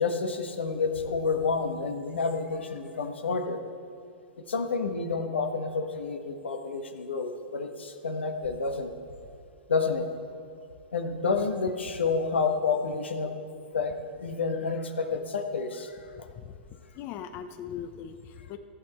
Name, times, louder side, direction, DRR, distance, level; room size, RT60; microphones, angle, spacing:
voice 1, 0.0-3.6 4.5-8.9 9.7-10.1 10.9-13.3 13.7-16.0, left 4 dB, 90° left, 5 dB, 1.2 m, -29 dB
voice 2, 16.9-18.6, left 9 dB, 40° left, 8 dB, 0.7 m, -39 dB
15.5 x 8.7 x 4.3 m, 2.5 s
hypercardioid pair, 115°, 6 cm